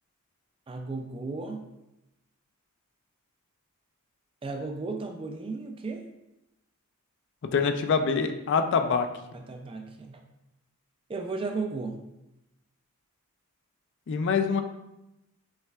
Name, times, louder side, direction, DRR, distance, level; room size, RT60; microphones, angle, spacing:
voice 1, 0.7-1.6 4.4-6.1 9.3-10.2 11.1-12.0, right 3 dB, 25° right, 4 dB, 0.3 m, -34 dB
voice 2, 7.5-9.1 14.1-14.6, left 5 dB, 55° left, 7 dB, 0.4 m, -25 dB
5.4 x 3.2 x 2.3 m, 0.90 s
head